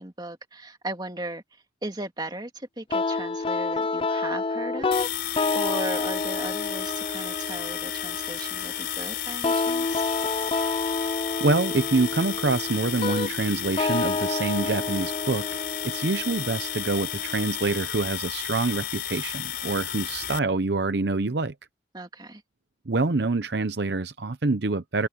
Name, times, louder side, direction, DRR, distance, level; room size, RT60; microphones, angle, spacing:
voice 1, 0.0-1.4 1.8-10.0 21.9-22.4, right 1 dB, 25° right, 2.3 m, -37 dB
sound 1, 2.9-17.9, left 3 dB, 30° left, 0.5 m, -29 dB
vcr internals, 4.9-20.4, left 11 dB, 60° left, 4.4 m, -33 dB
voice 2, 11.4-15.5 15.8-21.5 22.9-25.1, right 3 dB, 60° right, 0.8 m, -26 dB
open air
head